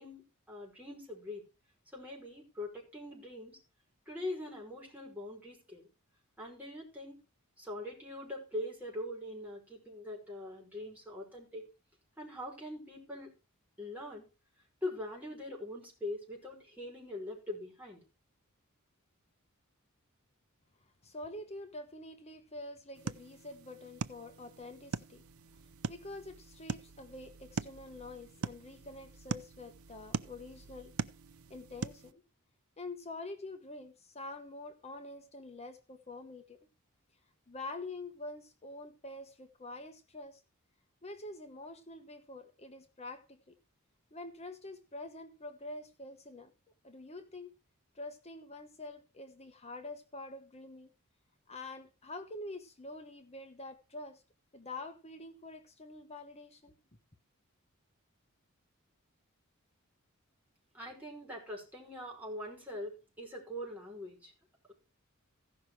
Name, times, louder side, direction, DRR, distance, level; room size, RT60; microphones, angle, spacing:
voice 1, 0.0-1.4 1.9-3.6 4.1-5.9 6.4-7.2 7.6-11.7 12.2-13.3 13.8-14.2 14.8-18.0 60.7-64.3, left 1 dB, 5° right, 5.4 m, -42 dB
voice 2, 21.0-25.2 25.9-30.9 31.5-32.2 32.8-36.6 37.5-40.4 41.0-43.6 44.1-46.5 46.8-47.5 47.9-50.9 51.5-54.2 54.5-56.7, left 2 dB, 30° left, 1.1 m, -46 dB
sound 1, 22.9-32.1, right 4 dB, 75° right, 0.6 m, -42 dB
15.5 x 5.9 x 4.8 m
head